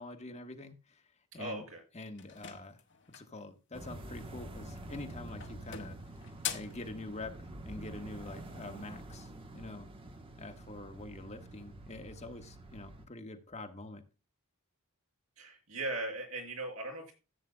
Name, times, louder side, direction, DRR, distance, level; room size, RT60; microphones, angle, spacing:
voice 1, 0.0-1.6 1.9-2.8 3.1-6.0 6.5-9.9 10.4-14.0, left 2 dB, 30° left, 6 dB, 1.2 m, -46 dB
voice 2, 1.4-1.8 15.4-17.1, right 2 dB, 75° right, 1 dB, 5.4 m, -38 dB
sound 1, 2.2-3.4 4.7-5.1 5.4-6.8, left 9 dB, 55° left, 1.4 m, -42 dB
sound 2, 3.7-13.1, right 1 dB, 25° right, 1.1 m, -47 dB
15.0 x 8.4 x 2.2 m, 0.31 s
head